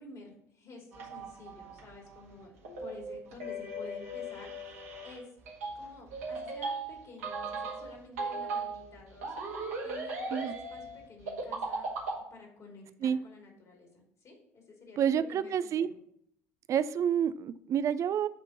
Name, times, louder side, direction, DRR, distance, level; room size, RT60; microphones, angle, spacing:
voice 1, 0.0-2.5 2.8-5.3 5.8-9.3 9.8-11.9 12.3-16.0, left 3 dB, 45° left, 0 dB, 2.7 m, -51 dB
sound 1, 0.9-12.2, right 2 dB, 75° right, 1.8 m, -38 dB
voice 2, 15.0-15.9 16.7-18.3, right 8 dB, 45° right, 15 dB, 0.4 m, -29 dB
8.3 x 3.7 x 5.8 m, 0.71 s
figure-of-eight pair, 60°, 8 cm